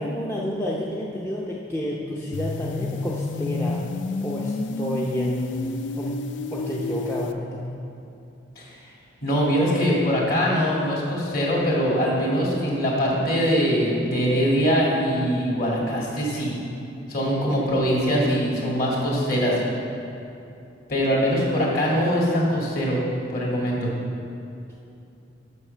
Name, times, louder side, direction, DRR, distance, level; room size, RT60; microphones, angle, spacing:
voice 1, 0.0-3.9 4.2-6.2 6.5-7.7, equal, 15° left, -5 dB, 0.6 m, -29 dB
sound 1, 2.3-7.3, left 3 dB, 70° left, 0.4 m, -30 dB
voice 2, 9.2-16.5 17.1-19.6 20.9-23.0 23.3-23.9, equal, 50° left, -4 dB, 2.2 m, -22 dB
8.3 x 5.4 x 6.7 m, 2.7 s
head